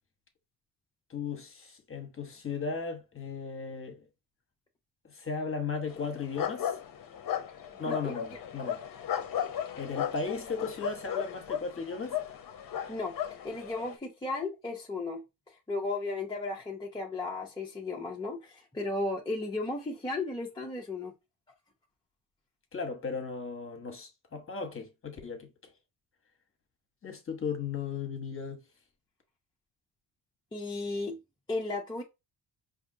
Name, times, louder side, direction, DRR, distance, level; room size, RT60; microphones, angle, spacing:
voice 1, 1.1-4.0 5.0-6.8 7.8-8.8 9.8-12.2 22.7-25.7 27.0-28.6, left 5 dB, 30° left, 1.1 m, -36 dB
sound 1, 5.9-14.0, left 9 dB, 50° left, 0.7 m, -36 dB
voice 2, 13.4-15.2 15.7-21.1 30.5-31.2 31.5-32.0, left 2 dB, 10° left, 0.6 m, -34 dB
4.9 x 2.7 x 2.6 m
cardioid pair, 130°, 43 cm